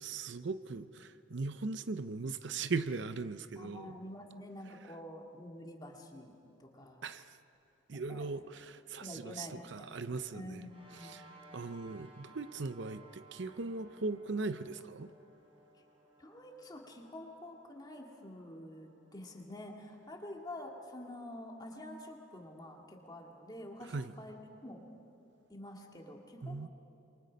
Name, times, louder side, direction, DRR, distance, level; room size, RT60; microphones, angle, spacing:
voice 1, 0.0-4.0 4.7-4.8 7.0-7.4 7.9-15.1 23.8-24.1 26.4-26.7, right 3 dB, 65° right, 12 dB, 0.6 m, -39 dB
voice 2, 3.6-7.0 7.9-8.4 9.0-9.9 10.3-11.3 16.2-24.8 25.5-26.7, left 1 dB, 20° left, 1 dB, 2.2 m, -48 dB
sound 1, 10.6-23.4, right 2 dB, 30° right, 4.8 m, -61 dB
28.0 x 23.0 x 5.3 m, 2.9 s
head